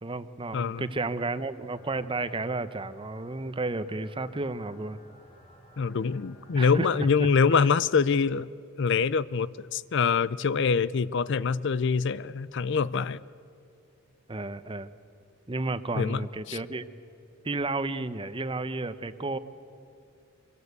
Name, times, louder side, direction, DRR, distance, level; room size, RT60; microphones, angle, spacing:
voice 1, 0.0-5.0 6.5-7.3 7.5-7.6 14.3-14.9 15.5-16.8 17.4-19.4, right 2 dB, 25° right, 0.8 m, -32 dB
voice 2, 0.5-0.9 5.8-8.5 8.8-13.2 16.0-16.6, left 5 dB, 60° left, 0.5 m, -25 dB
sound 1, 1.6-7.0, left 1 dB, 25° left, 3.3 m, -56 dB
24.5 x 22.5 x 8.2 m
head